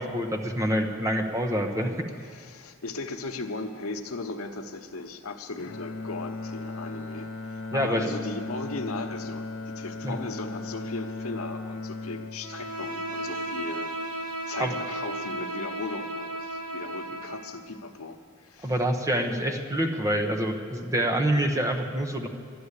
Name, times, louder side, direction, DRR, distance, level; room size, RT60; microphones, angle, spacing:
voice 1, 0.0-1.9 7.7-8.1 10.0-10.1 14.6-14.8 18.6-22.3, equal, 15° right, 3 dB, 0.8 m, -26 dB
voice 2, 2.2-14.1 14.5-18.7, left 3 dB, 85° left, 6 dB, 1.0 m, -37 dB
Bowed string instrument, 5.6-13.8, left 3 dB, 60° left, 0.7 m, -37 dB
Bowed string instrument 2, 12.4-17.6, right 1 dB, 85° right, 1.3 m, -34 dB
12.5 x 9.9 x 8.2 m, 2.1 s
head